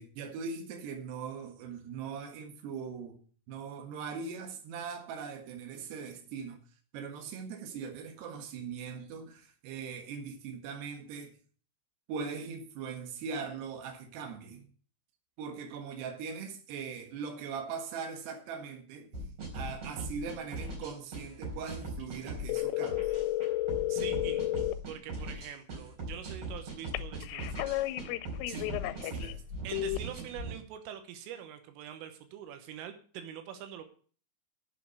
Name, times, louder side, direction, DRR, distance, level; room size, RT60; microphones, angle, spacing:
voice 1, 0.0-3.2 3.5-6.6 6.9-11.4 12.1-14.7 15.4-19.1 19.5-23.1 28.5-28.7 29.0-29.4, right 5 dB, 65° right, 3.4 m, -40 dB
sound 1, 19.1-30.5, right 1 dB, 35° right, 4.7 m, -40 dB
sound 2, 22.5-24.8 26.9-29.3 29.7-30.0, left 16 dB, 90° left, 3.2 m, -32 dB
voice 2, 23.9-24.5 24.9-27.8 29.6-33.8, right 9 dB, 85° right, 3.7 m, -44 dB
8.4 x 7.5 x 7.9 m
omnidirectional pair, 5.6 m